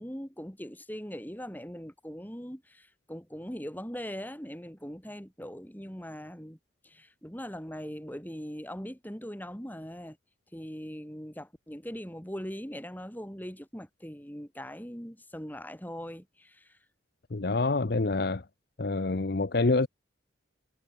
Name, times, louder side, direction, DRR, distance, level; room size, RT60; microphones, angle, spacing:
voice 1, 0.0-6.6 6.8-10.2 10.5-16.8, equal, 10° left, 3.8 m, -41 dB
voice 2, 17.3-18.4 18.8-19.9, left 3 dB, 50° left, 0.8 m, -26 dB
head